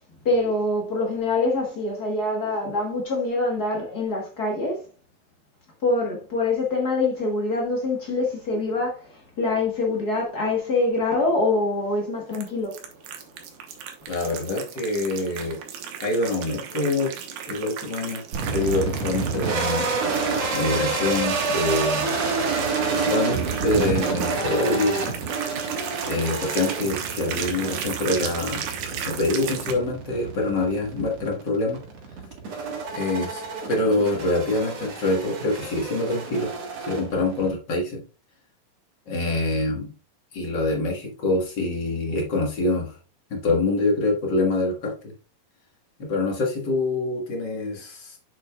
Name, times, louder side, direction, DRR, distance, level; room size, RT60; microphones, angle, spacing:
voice 1, 0.2-4.9 5.8-12.8, left 2 dB, 80° left, 0.8 m, -25 dB
sound 1, 12.3-29.7, right 8 dB, 80° right, 2.8 m, -35 dB
voice 2, 14.1-15.6 16.0-17.1 17.5-19.9 20.5-22.1 22.9-25.1 26.1-28.6 29.1-31.8 32.9-33.4 33.7-36.5 36.8-38.0 39.1-39.9 40.3-43.0 43.3-45.1 46.0-48.2, left 2 dB, 45° left, 1.5 m, -25 dB
sound 2, 18.3-37.5, right 4 dB, 55° right, 2.5 m, -29 dB
7.6 x 7.0 x 2.3 m
omnidirectional pair, 4.0 m